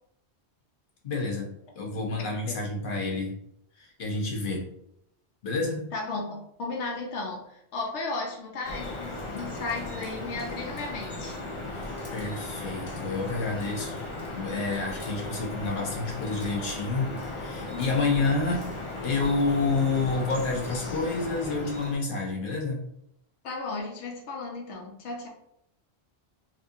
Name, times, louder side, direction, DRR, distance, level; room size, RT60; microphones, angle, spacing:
voice 1, 1.0-3.3 3.8-4.7 5.4-5.9 11.6-13.9 14.3-18.7 19.0-22.8, left 3 dB, 55° left, -2 dB, 1.1 m, -29 dB
voice 2, 5.9-11.4 17.7-18.3 23.4-25.3, left 3 dB, 85° left, 0 dB, 1.0 m, -35 dB
Drip, 8.6-21.9, left 2 dB, 30° left, 0.7 m, -36 dB
4.1 x 2.5 x 2.6 m, 0.75 s
omnidirectional pair, 1.1 m